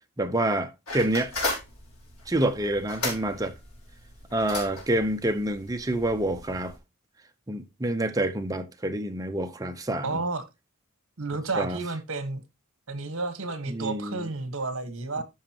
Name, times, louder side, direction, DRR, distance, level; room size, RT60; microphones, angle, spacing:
voice 1, 0.2-1.3 2.3-3.5 4.3-6.8 7.5-10.2 11.6-11.8 13.7-14.3 15.2-15.3, right 1 dB, 15° right, 0.7 m, -27 dB
sound 1, 0.9-6.8, left 2 dB, 80° left, 3.7 m, -36 dB
voice 2, 10.0-10.4 11.2-12.4 12.9-15.2, right 3 dB, 65° right, 1.3 m, -31 dB
13.0 x 5.2 x 2.9 m
head